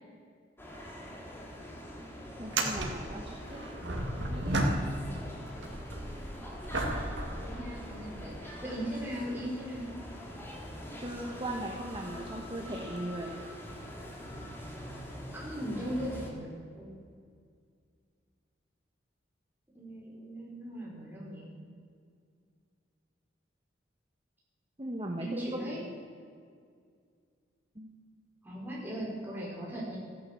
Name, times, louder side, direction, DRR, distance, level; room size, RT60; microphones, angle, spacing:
sound 1, 0.6-16.3, equal, 15° left, 2.5 m, -44 dB
sound 2, 1.0-1.2 1.5-1.6 2.4-5.2 5.6-8.2 8.9-9.0 13.2-13.3 14.7-14.8, right 1 dB, 80° right, 2.2 m, -34 dB
voice 1, 2.4-4.7 11.0-13.8 24.8-25.9 27.7-27.9, right 1 dB, 25° right, 1 dB, 1.3 m, -39 dB
voice 2, 7.3-9.9 15.3-16.9 19.7-21.5 25.2-25.8 28.4-30.0, equal, 10° right, -6 dB, 5.1 m, -38 dB
15.0 x 11.0 x 7.5 m, 2.2 s
head